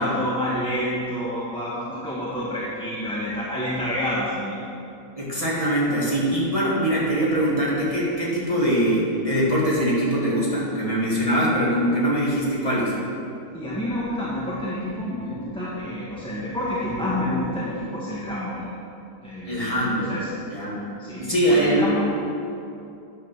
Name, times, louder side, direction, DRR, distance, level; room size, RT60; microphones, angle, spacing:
voice 1, 0.0-4.6 13.5-18.7 19.2-20.3 21.0-22.0, left 1 dB, 5° left, -8 dB, 1.4 m, -28 dB
voice 2, 5.1-12.9 19.5-20.1 20.5-20.8 21.2-22.0, equal, 20° left, -7 dB, 2.2 m, -22 dB
10.0 x 6.5 x 6.1 m, 2.7 s
omnidirectional pair, 1.8 m